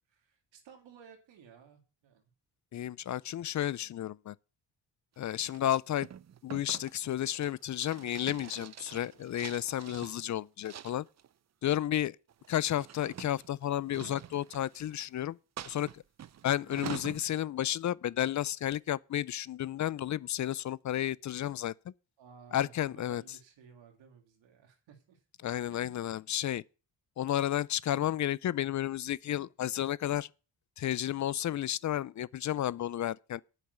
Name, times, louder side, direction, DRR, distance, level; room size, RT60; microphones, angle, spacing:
voice 1, 0.1-2.2 22.2-25.2 25.7-26.1, right 7 dB, 85° right, 2.3 m, -56 dB
voice 2, 2.7-4.3 5.2-6.1 6.4-11.1 11.6-12.2 12.5-15.4 15.7-16.0 16.4-21.7 22.5-23.2 25.4-26.6 27.2-30.3 30.8-33.4, left 12 dB, 45° left, 0.4 m, -32 dB
sound 1, 5.5-10.2 10.7-11.3 12.3-15.1 15.6-17.2, right 10 dB, 40° right, 0.5 m, -46 dB
8.8 x 5.9 x 8.0 m
cardioid pair, 85°, 44 cm